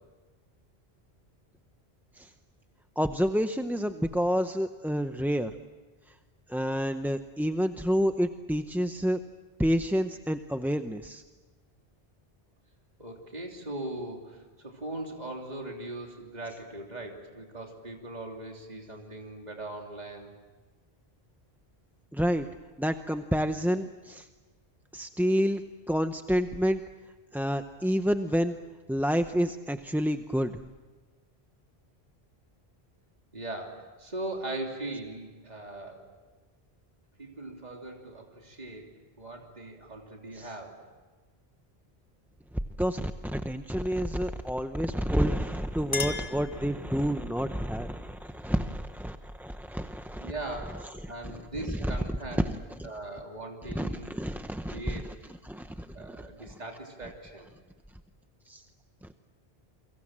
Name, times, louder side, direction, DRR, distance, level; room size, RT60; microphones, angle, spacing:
voice 1, 3.0-5.6 6.5-9.2 9.6-11.2 22.1-22.5 22.8-24.3 24.9-26.8 27.3-28.6 28.9-30.6 40.3-40.5 42.8-50.3 51.2-51.4 51.7-52.0 52.4-52.9 53.7-55.1 55.4-56.5 58.5-58.6 59.0-59.1, equal, ahead, 7 dB, 0.6 m, -29 dB
voice 2, 13.0-20.3 33.3-36.1 37.2-38.9 39.2-40.8 50.1-52.5 52.8-54.1 54.7-55.0 55.9-57.5, right 2 dB, 40° right, 1 dB, 3.3 m, -40 dB
Chink clink, 45.3-47.2, left 3 dB, 35° left, 2.1 m, -37 dB
29.0 x 24.0 x 7.5 m, 1.3 s
omnidirectional pair, 1.1 m